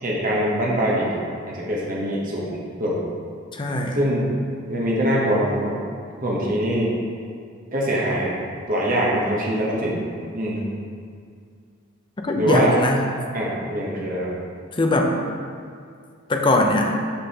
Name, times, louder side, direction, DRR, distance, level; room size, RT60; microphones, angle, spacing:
voice 1, 0.0-3.0 3.9-4.3 4.7-5.7 6.2-6.9 7.7-8.3 8.7-10.0 10.3-10.7 12.4-12.7 13.3-14.3, equal, 40° right, -5 dB, 1.0 m, -23 dB
voice 2, 3.5-4.0 12.2-13.0 14.7-15.1 16.3-16.9, left 2 dB, 25° left, 2 dB, 0.5 m, -21 dB
7.0 x 5.3 x 2.9 m, 2.2 s
head